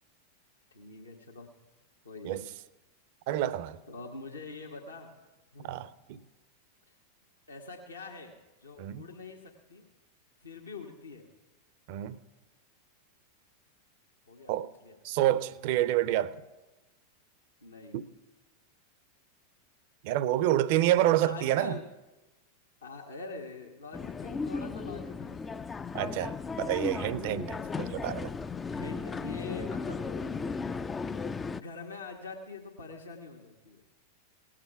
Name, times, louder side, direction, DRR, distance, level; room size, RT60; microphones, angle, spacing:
voice 1, 0.7-1.5 2.0-2.5 3.9-5.2 5.5-5.7 6.9-7.0 7.5-9.9 10.4-11.3 14.3-15.0 17.6-18.0 21.0-21.9 22.8-25.7 27.6-27.8 28.6-30.5 31.5-33.8, left 3 dB, 75° left, 1.3 m, -45 dB
voice 2, 3.3-3.8 5.6-5.9 8.8-9.0 11.9-12.2 14.5-14.7 15.0-16.4 17.9-18.0 20.0-21.7 25.9-28.3, right 13 dB, 50° right, 0.5 m, -28 dB
sound 1, 23.9-31.6, left 4 dB, 15° left, 0.3 m, -36 dB
18.5 x 7.5 x 5.8 m
figure-of-eight pair, 90°, 0 cm